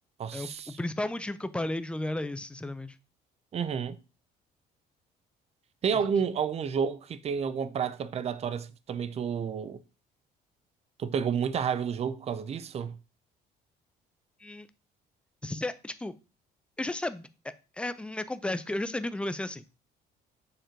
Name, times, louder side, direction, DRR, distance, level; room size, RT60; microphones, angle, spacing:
voice 1, 0.2-0.8 3.5-4.0 5.8-9.8 11.0-13.0, right 7 dB, 40° right, 0.5 m, -30 dB
voice 2, 0.8-3.0 14.4-14.7 15.4-16.1 16.8-17.3 17.8-19.6, left 1 dB, 5° left, 0.5 m, -33 dB
6.7 x 3.0 x 5.0 m
cardioid pair, 110°, 17 cm